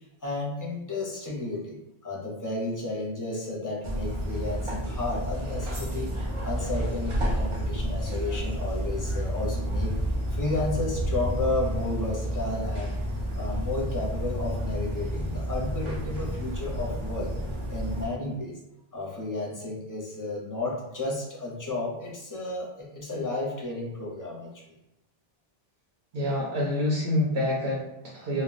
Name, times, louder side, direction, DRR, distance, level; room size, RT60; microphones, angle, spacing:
voice 1, 0.2-6.1 6.4-10.0 10.3-13.0 13.3-17.3 17.7-18.6 18.9-24.6, left 2 dB, 25° left, -3 dB, 0.5 m, -32 dB
sound 1, 3.8-18.1, equal, 45° right, 0.4 m, -30 dB
voice 2, 26.1-28.4, left 1 dB, 75° right, -5 dB, 0.9 m, -27 dB
2.3 x 2.1 x 3.8 m, 0.92 s
omnidirectional pair, 1.1 m